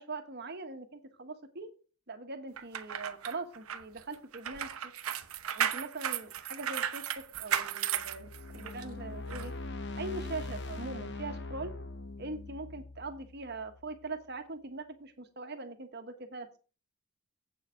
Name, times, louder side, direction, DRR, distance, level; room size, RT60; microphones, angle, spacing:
voice 1, 0.0-1.7 2.1-4.9 5.5-9.5 10.0-11.7 12.2-16.6, right 3 dB, 50° right, 6 dB, 1.4 m, -42 dB
sound 1, 2.6-8.8 9.3-9.5, right 9 dB, 80° right, 0.8 m, -35 dB
sound 2, 8.0-14.2, left 2 dB, 50° left, 0.9 m, -42 dB
8.3 x 7.0 x 5.0 m, 0.35 s
head